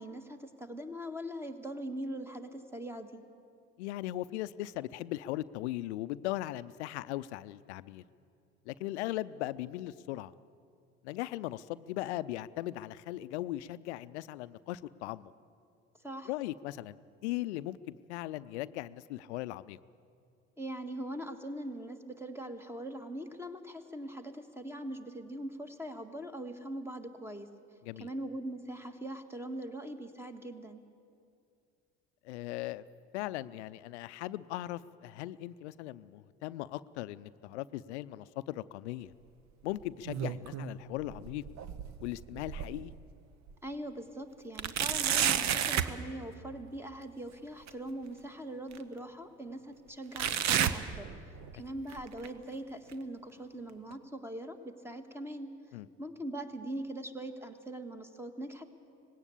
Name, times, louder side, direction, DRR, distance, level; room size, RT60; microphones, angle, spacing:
voice 1, 0.0-3.2 16.0-16.3 20.6-27.5 28.0-30.8 43.6-51.1 51.5-55.5 56.0-58.6, right 1 dB, 5° right, 8 dB, 1.7 m, -41 dB
voice 2, 3.8-8.0 8.7-10.3 11.0-15.3 16.3-19.8 27.9-28.1 32.2-32.8 33.1-39.1 39.6-41.4 42.0-42.9 55.7-55.9, left 15 dB, 80° left, 16 dB, 0.6 m, -38 dB
sound 1, 39.8-40.7 41.1-43.0 43.5-43.6 44.6-46.0 47.7-47.8 48.7-48.8 50.2-51.5 51.9-52.3 52.9-53.0 53.9-54.0, right 9 dB, 55° right, 1.0 m, -31 dB
19.0 x 17.0 x 8.4 m, 2.4 s
hypercardioid pair, 65°, 34 cm